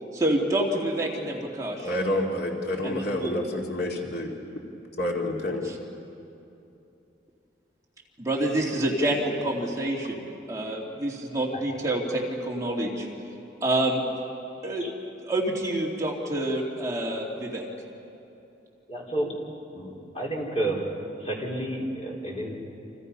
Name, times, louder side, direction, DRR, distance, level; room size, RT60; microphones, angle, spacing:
voice 1, 0.1-1.9 2.8-3.5 5.6-5.7 8.2-13.1 13.6-14.1 14.6-14.9 15.2-17.7, right 1 dB, 20° right, -3 dB, 2.8 m, -27 dB
voice 2, 1.8-4.3 5.0-5.7, left 1 dB, 60° left, 0 dB, 2.4 m, -28 dB
voice 3, 18.9-19.4 19.7-20.9 21.2-22.6, right 1 dB, 35° left, -3 dB, 4.5 m, -30 dB
29.5 x 27.5 x 5.6 m, 2.8 s
head